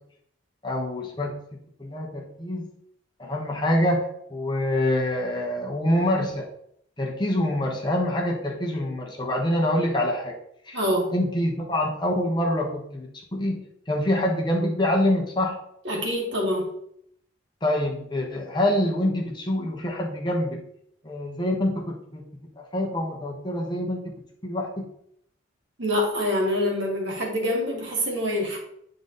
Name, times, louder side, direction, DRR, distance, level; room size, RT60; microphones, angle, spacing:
voice 1, 0.6-1.3 1.8-2.7 3.2-6.5 7.0-10.4 10.7-10.8 11.1-13.6 13.9-15.6 17.6-20.6 21.0-21.8 22.1-22.2 22.5-24.0 24.4-24.7, left 1 dB, 20° left, -1 dB, 1.2 m, -25 dB
voice 2, 10.7-11.1 15.8-16.7 25.8-28.6, left 1 dB, 60° right, -1 dB, 2.3 m, -25 dB
9.3 x 4.0 x 3.9 m, 0.71 s
head